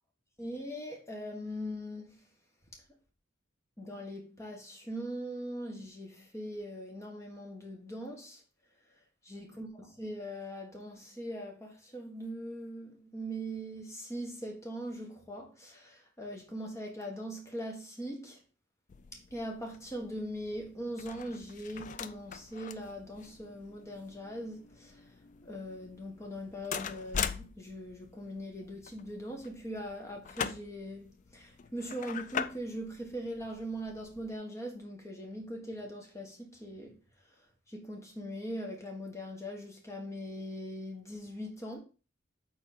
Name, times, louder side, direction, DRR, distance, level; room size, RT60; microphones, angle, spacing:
voice 1, 0.4-2.3 3.8-8.4 9.2-18.4 19.3-25.1 25.4-37.0 37.7-41.8, equal, 15° left, 1.4 m, -41 dB
sound 1, 18.9-34.3, left 7 dB, 40° left, 0.3 m, -43 dB
4.4 x 4.1 x 5.2 m
head